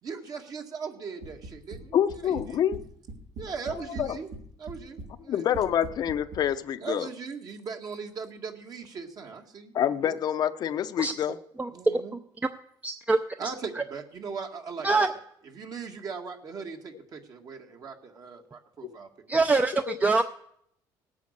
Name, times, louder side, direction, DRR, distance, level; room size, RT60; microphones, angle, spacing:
voice 1, 0.0-2.0 2.2-2.6 3.4-4.3 4.6-5.4 6.8-9.7 10.0-10.2 11.7-12.2 13.4-15.0 15.4-19.1, right 5 dB, 50° right, 1.9 m, -39 dB
sound 1, 1.2-1.8 2.1-2.8 3.1-4.4 4.7-5.1 5.5-6.4, right 2 dB, 85° right, 3.4 m, -40 dB
voice 2, 1.9-2.8 4.0-4.2 5.3-7.1 9.7-11.4 19.8-20.0, left 9 dB, 55° left, 0.7 m, -27 dB
voice 3, 12.8-13.2 14.8-15.1 19.3-20.2, right 3 dB, 15° right, 0.6 m, -23 dB
18.0 x 8.5 x 6.7 m
cardioid pair, 105°, 8 cm